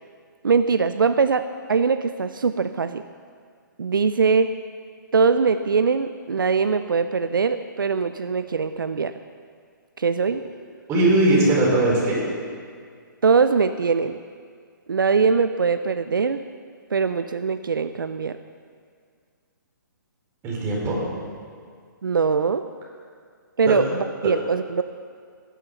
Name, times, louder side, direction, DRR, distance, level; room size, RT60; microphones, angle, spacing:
voice 1, 0.4-3.0 3.8-4.5 5.1-9.1 10.0-10.4 13.2-14.2 14.9-16.4 16.9-18.4 22.0-22.6 23.6-24.8, right 5 dB, 80° right, 10 dB, 0.6 m, -22 dB
voice 2, 10.9-12.2 20.4-21.0 23.7-23.9, right 1 dB, 25° right, -4 dB, 4.8 m, -20 dB
17.5 x 11.0 x 5.6 m, 2.1 s
hypercardioid pair, 135°, 11 cm